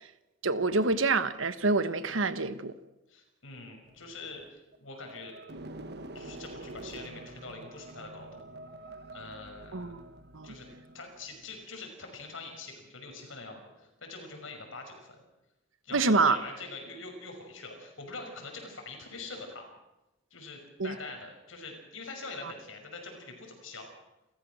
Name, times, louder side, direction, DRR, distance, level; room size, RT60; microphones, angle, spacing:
voice 1, 0.4-2.7 9.7-10.0 10.3-10.5 15.9-16.4 20.8-20.9, right 3 dB, 80° right, 1.2 m, -26 dB
voice 2, 3.1-5.3 6.1-8.4 9.1-10.0 10.4-10.7 10.9-15.2 15.8-19.7 20.3-23.9, left 3 dB, 85° left, 5.8 m, -44 dB
sound 1, 3.9-11.6, right 2 dB, 55° right, 1.3 m, -47 dB
28.0 x 14.5 x 6.3 m
head